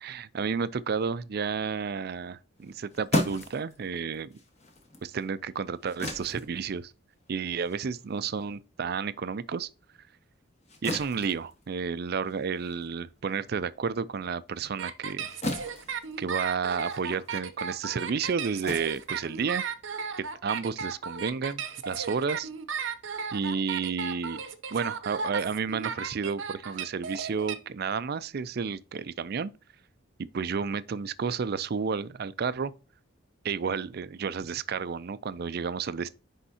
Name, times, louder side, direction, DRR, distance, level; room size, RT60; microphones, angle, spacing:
voice 1, 0.0-4.3 5.0-6.9 7.3-9.7 10.8-15.3 16.2-19.6 20.2-22.5 23.3-24.4 24.7-29.5 30.3-32.7 33.4-36.1, right 5 dB, 50° right, 0.4 m, -31 dB
sound 1, 2.6-9.4 9.7-19.9, left 1 dB, 35° left, 1.3 m, -38 dB
sound 2, 14.8-27.5, right 6 dB, 70° right, 0.8 m, -35 dB
9.6 x 3.6 x 2.8 m
head